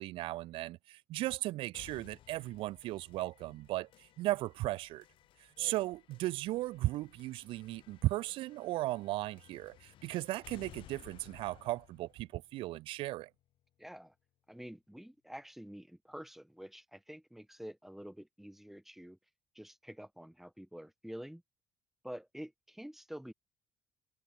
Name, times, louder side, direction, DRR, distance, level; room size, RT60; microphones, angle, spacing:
voice 1, 0.0-5.0 5.6-13.3, right 17 dB, 75° right, 0.6 m, -36 dB
sound 1, 1.7-13.7, left 13 dB, 70° left, 1.2 m, -59 dB
voice 2, 13.8-14.1 14.5-19.2 19.5-21.4 22.0-23.3, equal, 5° right, 1.1 m, -48 dB
supercardioid pair, 70°, 9 cm